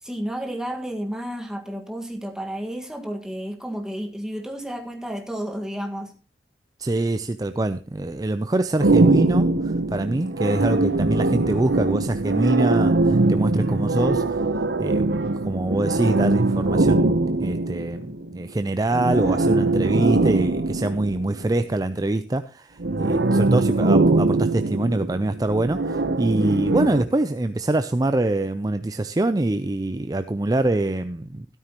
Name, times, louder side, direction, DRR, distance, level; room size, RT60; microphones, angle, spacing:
voice 1, 0.0-6.2, equal, 5° right, 1.7 m, -31 dB
voice 2, 6.8-14.4 14.8-31.5, right 2 dB, 20° right, 0.5 m, -24 dB
sound 1, 8.8-18.4 18.9-21.5 22.8-27.0, right 2 dB, 80° right, 0.8 m, -22 dB
13.0 x 13.0 x 3.0 m
head